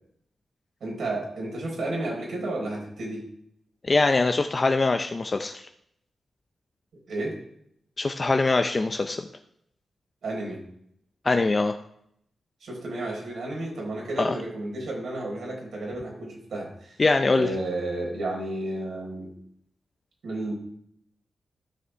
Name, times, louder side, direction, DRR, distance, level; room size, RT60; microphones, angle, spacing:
voice 1, 0.8-3.2 7.1-7.3 10.2-10.6 12.6-17.0 17.3-19.3 20.2-20.5, right 2 dB, 75° right, -2 dB, 4.3 m, -32 dB
voice 2, 3.8-5.7 8.0-9.3 11.2-11.8 14.2-14.3 17.0-17.5, left 3 dB, 30° left, 6 dB, 0.5 m, -23 dB
15.0 x 6.9 x 3.4 m, 0.73 s
wide cardioid pair, 130°, 0 cm